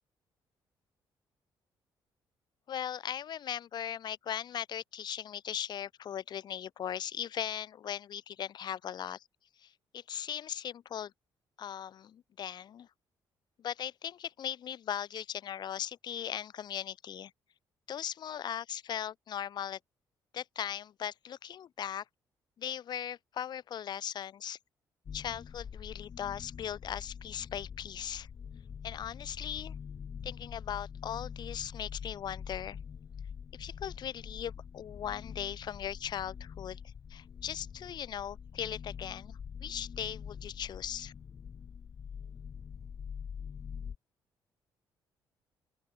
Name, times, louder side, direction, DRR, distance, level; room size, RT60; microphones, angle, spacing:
voice 1, 2.7-9.2 9.6-11.1 11.6-12.9 13.6-17.3 17.9-19.8 20.3-22.0 22.6-24.6 25.1-28.3 28.8-29.7 30.2-32.8 33.6-41.1, left 9 dB, 60° left, 4.6 m, -39 dB
sound 1, 25.1-44.0, left 7 dB, 40° left, 1.3 m, -45 dB
open air
cardioid pair, 125°, 8 cm